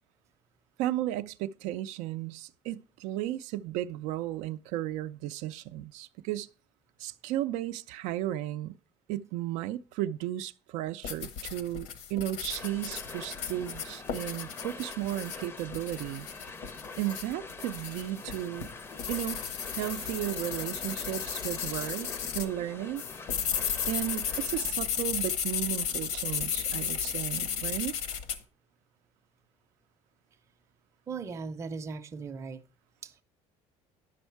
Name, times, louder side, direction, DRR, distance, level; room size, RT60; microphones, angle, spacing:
voice 1, 0.8-6.5 7.0-8.8 9.1-16.3 17.0-18.7 19.1-19.4 19.7-23.0 23.9-27.9, right 13 dB, 85° right, 0.5 m, -34 dB
sound 1, 11.0-22.5 23.0-28.4, left 8 dB, 80° left, 1.1 m, -34 dB
sound 2, 12.5-24.7, left 3 dB, 20° left, 0.5 m, -45 dB
voice 2, 31.1-32.6 33.0-33.2, right 5 dB, 25° right, 0.6 m, -38 dB
10.0 x 6.3 x 4.5 m
cardioid pair, 160°, 12 cm